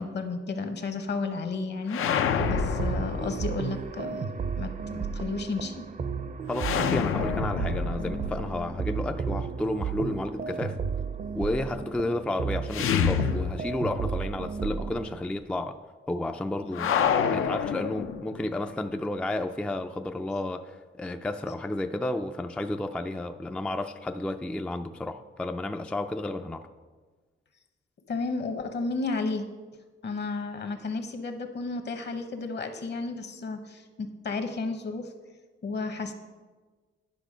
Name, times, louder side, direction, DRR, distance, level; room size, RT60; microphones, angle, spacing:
voice 1, 0.0-5.8 16.8-16.9 28.1-29.4 30.0-35.1 35.6-36.1, left 3 dB, 55° left, 7 dB, 1.0 m, -33 dB
sound 1, 1.9-3.9 6.5-9.5 12.7-14.1 14.4-14.5 16.7-18.5, left 8 dB, 85° left, 0.6 m, -28 dB
sound 2, 2.4-15.2, right 6 dB, 40° right, 0.6 m, -33 dB
voice 2, 6.5-10.8 11.3-15.8 16.1-26.6, left 1 dB, 5° left, 6 dB, 0.3 m, -32 dB
10.5 x 6.0 x 5.0 m, 1.4 s
cardioid pair, 120°, 21 cm